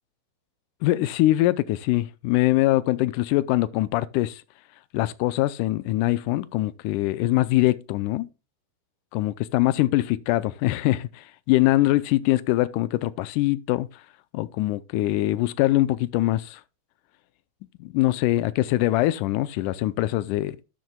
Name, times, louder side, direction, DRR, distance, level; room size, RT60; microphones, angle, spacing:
voice 1, 0.8-4.4 4.9-8.3 9.1-13.9 14.3-16.6 17.8-20.6, left 16 dB, 90° left, 2.1 m, -23 dB
12.0 x 7.7 x 2.2 m
omnidirectional pair, 3.6 m